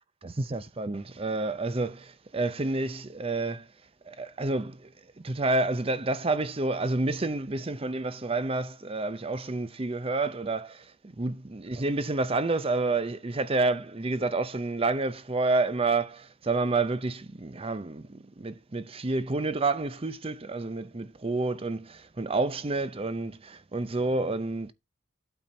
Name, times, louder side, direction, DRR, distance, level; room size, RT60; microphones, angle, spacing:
voice 1, 0.2-3.7 4.1-4.9 5.2-10.9 11.2-24.7, right 3 dB, 30° right, 0.6 m, -29 dB
8.9 x 4.5 x 4.3 m
head